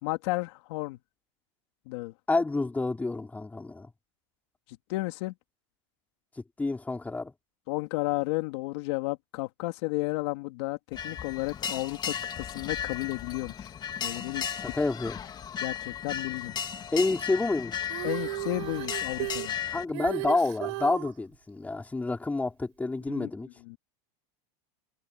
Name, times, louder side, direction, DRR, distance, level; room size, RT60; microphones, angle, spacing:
voice 1, 0.0-1.0 1.9-2.1 4.9-5.3 7.7-10.8 11.0-13.7 14.0-14.4 15.6-16.5 18.0-19.5 23.1-23.3 23.7-23.8, left 22 dB, 70° left, 2.5 m, -32 dB
voice 2, 2.3-3.9 6.6-7.3 14.6-15.2 16.9-17.7 19.7-23.5, left 3 dB, 10° left, 4.9 m, -29 dB
sound 1, 10.9-19.8, left 8 dB, 30° left, 2.4 m, -35 dB
Female singing, 17.8-21.1 23.1-23.2, right 25 dB, 70° right, 4.3 m, -35 dB
supercardioid pair, 130°, 15 cm